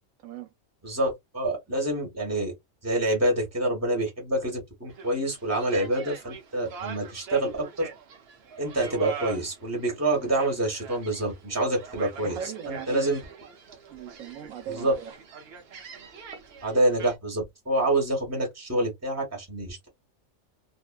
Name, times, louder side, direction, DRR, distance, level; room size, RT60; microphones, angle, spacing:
voice 1, 0.2-0.5 12.2-13.2 13.9-15.1, right 8 dB, 85° right, 1.1 m, -38 dB
voice 2, 0.8-2.5 2.8-7.9 8.6-12.4 12.7-13.2 14.7-14.9 16.6-19.9, right 1 dB, 15° right, 1.1 m, -27 dB
sound 1, 4.9-17.2, right 6 dB, 60° right, 0.8 m, -43 dB
2.5 x 2.3 x 2.2 m
omnidirectional pair, 1.4 m